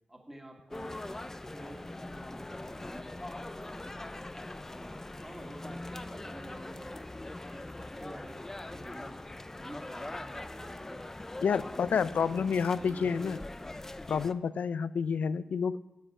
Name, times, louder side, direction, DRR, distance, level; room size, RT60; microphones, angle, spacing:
voice 1, 0.1-4.3 4.7-7.1 7.5-11.1 11.4-12.4 12.7-13.5, right 1 dB, 10° right, 1 dB, 1.8 m, -50 dB
sound 1, 0.7-14.3, left 2 dB, 15° left, 0.4 m, -42 dB
voice 2, 11.4-13.4 14.1-15.8, left 6 dB, 85° left, 16 dB, 0.4 m, -29 dB
10.0 x 8.6 x 8.9 m, 1.1 s
wide cardioid pair, 165°, 3 cm